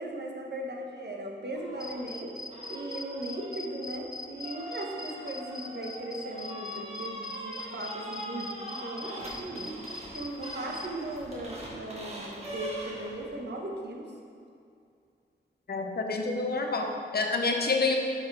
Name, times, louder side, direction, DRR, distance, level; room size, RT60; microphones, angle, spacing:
voice 1, 0.0-2.3 2.7-9.7 10.1-14.1, right 1 dB, 60° right, 0 dB, 1.0 m, -38 dB
sound 1, 1.5-2.1 2.5-13.4, equal, 35° right, 1.3 m, -42 dB
sound 2, 1.8-10.9, left 3 dB, 20° left, 0.5 m, -41 dB
voice 2, 15.7-17.9, left 3 dB, 55° left, 2 dB, 0.8 m, -28 dB
6.5 x 5.3 x 4.7 m, 2.4 s
wide cardioid pair, 90°, 19 cm